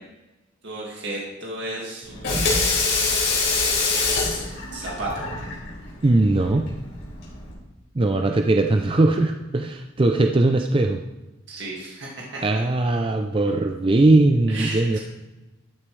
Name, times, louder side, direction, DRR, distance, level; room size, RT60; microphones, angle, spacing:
voice 1, 0.6-2.5 4.7-5.2 11.5-12.6 14.5-15.0, right 2 dB, 60° right, -3 dB, 2.0 m, -33 dB
Water tap faucet / Sink (filling or washing), 2.0-7.5, left 3 dB, 60° left, 4.1 m, -25 dB
voice 2, 6.0-6.7 8.0-11.0 12.4-15.0, right 2 dB, 25° right, 5 dB, 0.4 m, -20 dB
13.0 x 8.8 x 3.2 m, 1.1 s
head